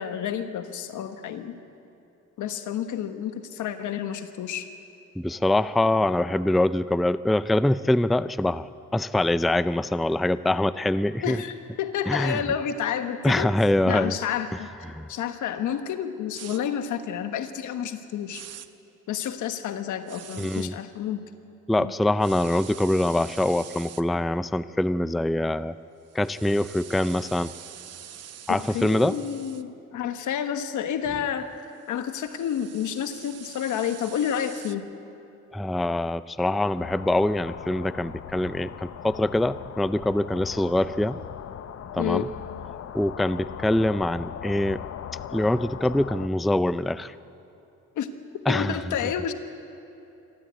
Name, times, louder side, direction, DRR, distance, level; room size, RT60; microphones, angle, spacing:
voice 1, 0.0-1.6 2.4-4.7 11.2-13.5 13.9-14.7 15.1-18.4 19.1-21.2 21.8-21.9 28.5-31.5 31.9-34.8 42.0-42.3 48.0-48.1 48.5-49.3, left 9 dB, 80° left, 8 dB, 1.4 m, -30 dB
voice 2, 5.2-11.4 12.1-12.4 13.2-14.2 14.5-14.6 14.9-15.1 20.4-20.8 21.7-25.7 26.1-27.5 28.5-29.2 35.5-41.2 41.9-42.3 42.9-44.8 45.3-47.1 48.5-49.1, left 1 dB, ahead, 14 dB, 0.4 m, -24 dB
sound 1, 16.3-16.6 18.3-18.7 20.1-20.7 22.2-24.0 26.1-29.6 31.7-34.8, right 9 dB, 55° right, 0.9 m, -45 dB
sound 2, 36.8-46.3, left 9 dB, 50° left, 0.7 m, -39 dB
27.0 x 12.5 x 8.3 m, 2.9 s
cardioid pair, 90°, 30 cm